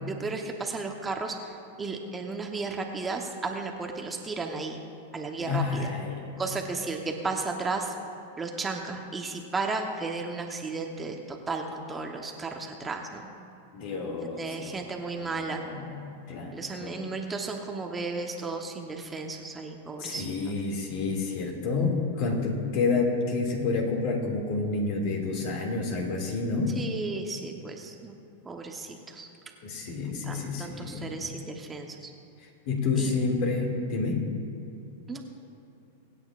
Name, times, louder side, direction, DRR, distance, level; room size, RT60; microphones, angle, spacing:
voice 1, 0.1-4.8 5.1-5.9 6.4-7.9 8.4-13.3 14.2-15.7 16.5-20.5 26.8-28.2 28.4-29.3 30.1-32.1 33.0-33.1 35.1-35.2, right 3 dB, 15° right, 2 dB, 1.0 m, -34 dB
voice 2, 5.4-6.4 13.7-14.9 15.2-16.5 16.8-17.0 20.0-26.8 29.6-31.3 32.4-34.3, left 4 dB, 55° left, 1 dB, 2.3 m, -29 dB
24.0 x 8.9 x 2.5 m, 2.7 s
hypercardioid pair, 120°, 0 cm